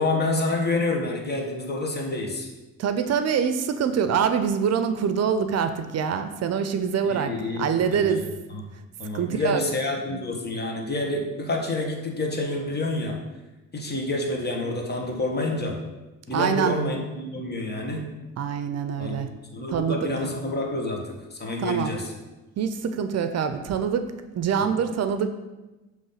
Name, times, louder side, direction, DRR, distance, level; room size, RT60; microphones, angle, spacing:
voice 1, 0.0-2.5 7.0-8.6 9.0-13.2 13.7-15.8 16.3-18.1 19.0-19.2 19.5-22.1 24.5-24.7, left 2 dB, 35° left, 1 dB, 1.4 m, -28 dB
voice 2, 2.8-8.2 9.1-9.6 16.3-16.8 18.4-19.3 19.7-20.0 21.6-21.9 22.6-25.3, right 7 dB, 55° right, 9 dB, 0.6 m, -25 dB
7.2 x 3.1 x 5.6 m, 1.1 s
cardioid pair, 90°, 30 cm